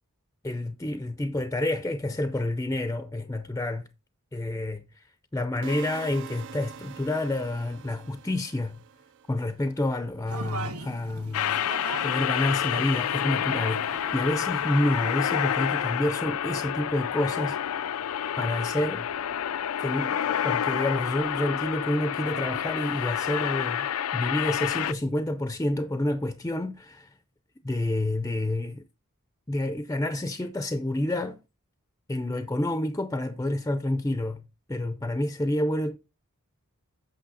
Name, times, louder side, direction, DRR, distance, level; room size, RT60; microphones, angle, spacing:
voice 1, 0.4-3.9 4.3-4.9 5.3-8.8 9.3-17.6 18.4-19.1 19.8-20.2 20.4-23.9 24.1-27.1 27.6-28.8 29.5-31.4 32.1-34.4 34.7-36.0, left 1 dB, 15° left, 0.5 m, -29 dB
sound 1, 5.6-9.7, right 7 dB, 55° right, 0.4 m, -44 dB
sound 2, 10.3-15.5, right 3 dB, 80° right, 1.8 m, -40 dB
sound 3, 11.3-24.9, left 9 dB, 70° left, 0.4 m, -29 dB
8.6 x 6.3 x 4.0 m
head